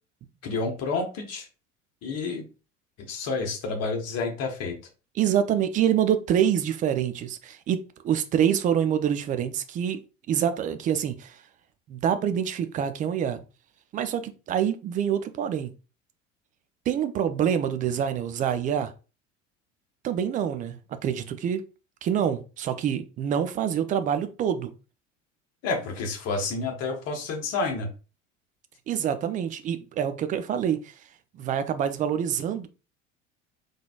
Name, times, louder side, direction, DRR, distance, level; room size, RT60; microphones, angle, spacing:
voice 1, 0.4-1.5 2.0-2.4 3.0-4.8 25.6-27.9, left 3 dB, 40° left, 1.2 m, -29 dB
voice 2, 5.2-10.0 10.3-11.4 11.9-13.4 13.9-15.7 16.9-18.9 20.0-20.8 21.0-21.6 22.0-24.7 28.9-30.9 31.3-32.7, right 9 dB, 20° right, 0.4 m, -26 dB
3.9 x 3.2 x 2.3 m
figure-of-eight pair, 65°, 38 cm